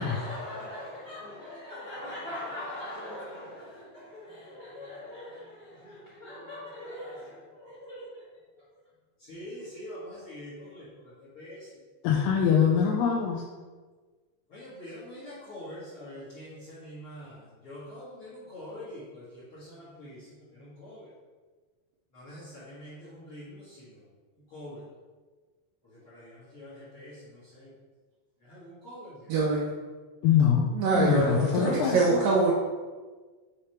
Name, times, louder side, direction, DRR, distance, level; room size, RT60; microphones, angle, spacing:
voice 1, 0.0-8.1 9.3-10.9 11.3-11.6 14.5-17.4 17.6-20.2 20.5-21.1 22.1-23.8 24.5-24.8 26.0-27.1 27.5-27.7 28.5-29.3, left 1 dB, 50° left, -8 dB, 1.6 m, -42 dB
voice 2, 12.0-13.4 30.2-30.6 30.9-32.2, left 7 dB, 85° left, -2 dB, 2.3 m, -23 dB
voice 3, 29.3-29.7 30.7-32.5, right 3 dB, 85° right, -4 dB, 1.5 m, -24 dB
7.0 x 3.4 x 4.3 m, 1.4 s
omnidirectional pair, 4.0 m